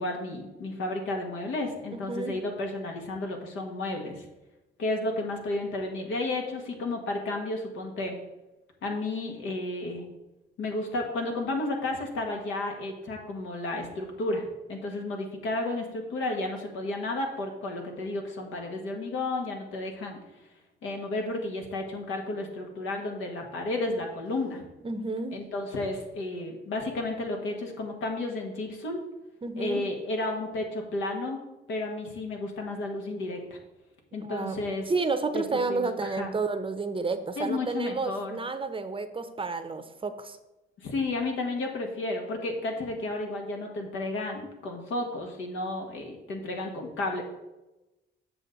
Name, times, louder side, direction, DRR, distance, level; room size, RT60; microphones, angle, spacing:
voice 1, 0.0-4.2 4.8-8.1 8.8-10.0 10.6-20.2 20.8-24.6 25.3-29.0 29.6-31.4 31.7-33.6 34.1-34.8 35.3-36.3 37.4-38.4 40.8-47.2, left 2 dB, 80° left, 2 dB, 1.6 m, -32 dB
voice 2, 24.8-25.4 29.4-29.9 34.2-40.4, right 3 dB, 25° right, 10 dB, 0.7 m, -31 dB
7.8 x 6.2 x 3.9 m, 1.0 s
cardioid pair, 90°, 20 cm